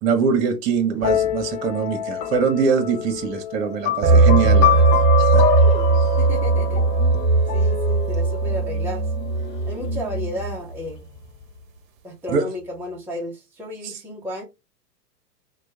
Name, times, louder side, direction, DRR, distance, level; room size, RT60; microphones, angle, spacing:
voice 1, 0.0-5.5 5.9-6.1 12.3-12.4 13.8-14.0, right 6 dB, 40° right, 1.3 m, -23 dB
sound 1, 1.0-8.6, left 12 dB, 25° left, 0.6 m, -27 dB
sound 2, 4.0-10.6, right 3 dB, 55° right, 0.9 m, -18 dB
sound 3, 5.3-11.8, left 6 dB, 85° left, 1.0 m, -32 dB
voice 2, 6.2-6.8 7.5-9.1 9.7-11.1 12.0-14.4, left 1 dB, 5° right, 0.8 m, -33 dB
4.4 x 2.5 x 4.6 m
figure-of-eight pair, 105°, 48 cm